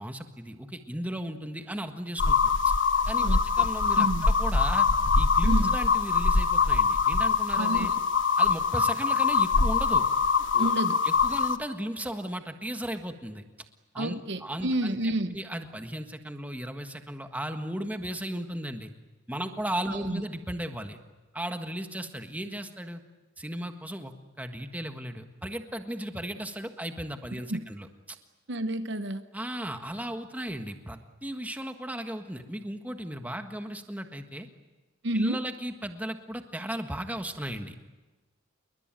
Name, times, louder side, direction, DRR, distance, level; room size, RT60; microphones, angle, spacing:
voice 1, 0.0-2.7 3.1-4.9 5.1-7.9 8.4-10.1 10.4-10.7 11.0-13.4 13.9-18.9 19.3-21.0 21.3-23.0 23.4-28.2 29.3-34.5 35.1-37.8, right 1 dB, 10° right, 1.6 m, -36 dB
sound 1, 2.2-11.6, left 5 dB, 65° left, 1.2 m, -23 dB
voice 2, 3.2-3.7 4.0-4.3 5.4-5.8 7.5-8.0 10.6-11.0 14.0-15.4 19.9-20.2 27.3-27.7 28.5-29.2 35.0-35.4, right 1 dB, 55° right, 1.0 m, -30 dB
28.5 x 22.0 x 9.1 m
head